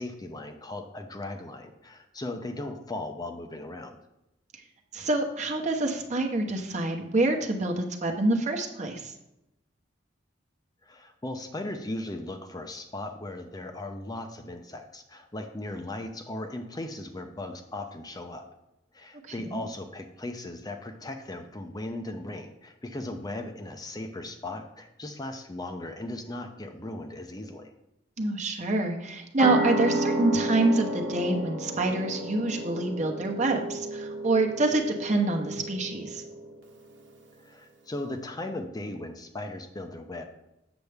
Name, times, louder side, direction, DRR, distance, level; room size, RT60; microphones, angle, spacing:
voice 1, 0.0-4.0 10.8-18.5 18.9-27.7 37.4-40.3, left 2 dB, 20° left, 5 dB, 0.6 m, -37 dB
voice 2, 4.9-9.1 19.5-19.6 28.2-36.2, right 2 dB, 40° right, 2 dB, 1.0 m, -26 dB
sound 1, 29.4-36.6, right 1 dB, 75° right, 1.2 m, -32 dB
8.0 x 6.7 x 3.4 m, 0.88 s
head